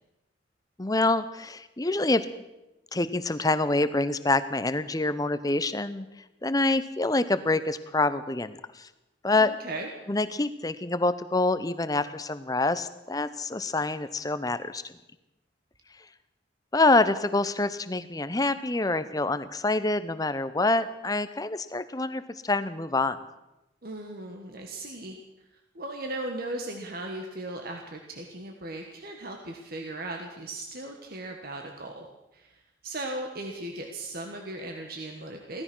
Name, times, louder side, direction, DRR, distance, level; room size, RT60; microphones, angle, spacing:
voice 1, 0.8-2.3 2.9-6.1 6.4-8.9 9.2-9.5 10.1-14.9 16.7-23.2, left 2 dB, 20° left, 13 dB, 0.7 m, -26 dB
voice 2, 9.3-9.9 23.8-25.2 25.7-32.1 32.3-35.6, right 2 dB, 50° right, 2 dB, 1.5 m, -37 dB
16.5 x 14.0 x 6.2 m, 0.96 s
head